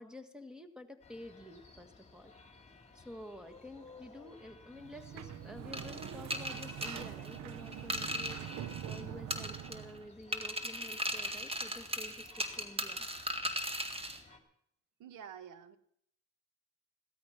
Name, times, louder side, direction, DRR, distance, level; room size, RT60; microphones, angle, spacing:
voice 1, 0.0-2.3 2.9-8.4 8.8-13.1, left 1 dB, ahead, 8 dB, 1.7 m, -50 dB
sound 1, 1.0-14.4, left 3 dB, 20° left, 2.9 m, -58 dB
Sliding door, 4.8-10.1, right 10 dB, 65° right, 0.8 m, -44 dB
sound 2, 5.7-9.0 9.3-10.0 10.3-14.2, right 1 dB, 20° right, 1.9 m, -38 dB
voice 2, 15.0-15.8, right 8 dB, 90° right, 12 dB, 1.4 m, -48 dB
16.0 x 13.0 x 5.9 m, 0.68 s
cardioid pair, 90°, 30 cm